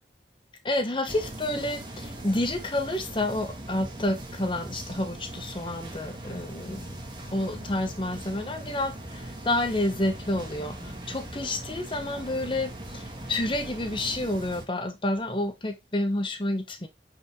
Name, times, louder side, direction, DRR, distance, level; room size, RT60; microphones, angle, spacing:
voice 1, 0.6-7.0 7.3-16.9, left 1 dB, 30° left, 1.0 m, -29 dB
sound 1, 1.1-14.6, right 1 dB, 25° right, 2.2 m, -40 dB
9.0 x 5.1 x 3.7 m
head